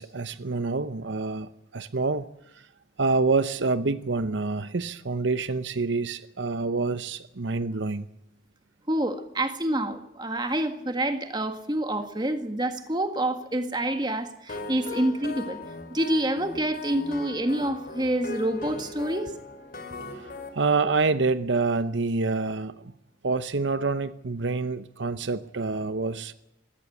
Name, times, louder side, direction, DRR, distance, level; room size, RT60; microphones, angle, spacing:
voice 1, 0.0-2.3 3.0-8.1 20.5-22.9 23.2-26.3, right 3 dB, 70° right, 0.8 m, -27 dB
voice 2, 8.9-15.6 15.9-19.3, right 1 dB, 20° right, 1.7 m, -27 dB
sound 1, 14.5-20.5, left 3 dB, 50° left, 2.9 m, -39 dB
21.5 x 17.0 x 8.5 m
head